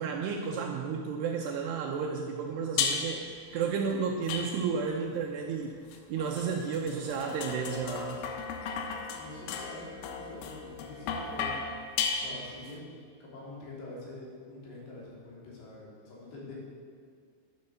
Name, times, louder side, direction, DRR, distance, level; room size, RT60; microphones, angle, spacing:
voice 1, 0.0-5.7 6.1-8.1, right 6 dB, 75° right, 1 dB, 2.6 m, -32 dB
sound 1, 2.8-3.3 4.3-5.0 5.9-12.7, left 5 dB, 85° left, 3.6 m, -35 dB
voice 2, 9.1-11.6 12.1-16.5, left 2 dB, 65° left, -5 dB, 5.4 m, -46 dB
11.0 x 10.5 x 6.9 m, 2.1 s
omnidirectional pair, 5.6 m